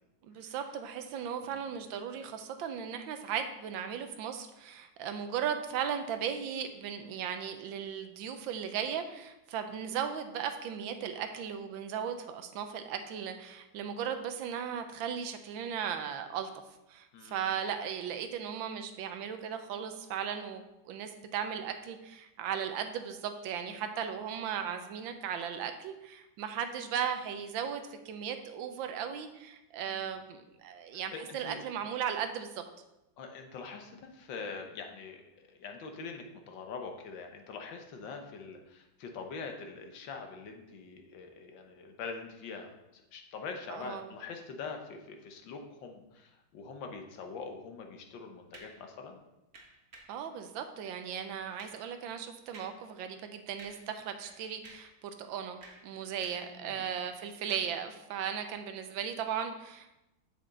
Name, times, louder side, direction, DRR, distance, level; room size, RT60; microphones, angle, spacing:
voice 1, 0.2-16.5 16.9-32.6 43.7-44.1 50.1-59.9, right 8 dB, 75° right, 7 dB, 1.4 m, -37 dB
voice 2, 17.1-17.5 29.9-30.1 30.9-31.6 33.2-49.2 56.5-56.9, left 5 dB, 70° left, 4 dB, 1.6 m, -44 dB
sound 1, 48.5-48.8 49.5-50.2 50.8-51.0 51.3-51.9 52.5-52.8 53.1-53.3 53.6-54.0 54.2-55.0 55.4-56.6 56.8-57.8 58.4-58.6, right 3 dB, 40° right, 1.1 m, -54 dB
7.6 x 7.0 x 3.8 m, 0.94 s
omnidirectional pair, 2.2 m